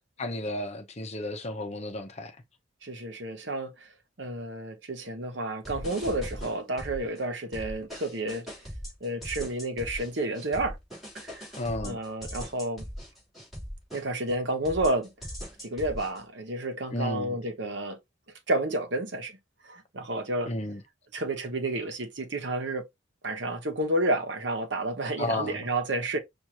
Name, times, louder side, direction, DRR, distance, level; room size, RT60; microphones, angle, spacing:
voice 1, 0.2-2.4 11.6-12.0 16.9-17.4 20.5-20.8 25.2-25.6, left 2 dB, 35° left, 0.8 m, -33 dB
voice 2, 2.8-3.9 4.2-8.5 9.0-10.8 11.1-11.5 11.8-12.9 13.9-15.1 15.6-18.0 18.5-19.4 19.6-20.5 21.1-22.8 23.2-26.2, right 1 dB, 65° right, 1.0 m, -30 dB
sound 1, 5.6-7.2 7.5-14.3 14.6-16.2, equal, ahead, 3.2 m, -40 dB
6.2 x 2.6 x 2.9 m
head